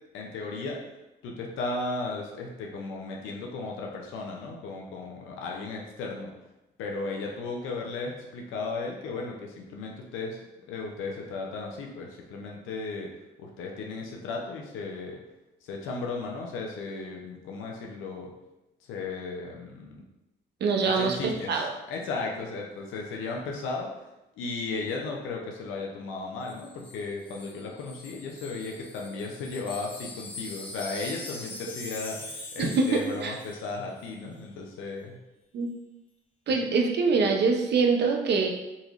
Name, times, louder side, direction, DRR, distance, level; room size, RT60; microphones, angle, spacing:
voice 1, 0.1-0.8 1.2-6.3 6.8-10.4 10.7-13.1 13.4-15.2 15.6-18.3 18.9-20.0 20.8-23.9 24.4-35.2, left 3 dB, 90° left, 0 dB, 0.6 m, -35 dB
voice 2, 20.6-21.2 21.5-21.7 32.6-33.3 35.5-35.7 36.5-38.5, right 4 dB, 60° right, 2 dB, 0.6 m, -24 dB
Wind chime, 26.5-33.7 34.0-34.2, left 2 dB, 25° left, 1.0 m, -43 dB
4.0 x 2.9 x 2.4 m, 0.97 s
cardioid pair, 90°, 20 cm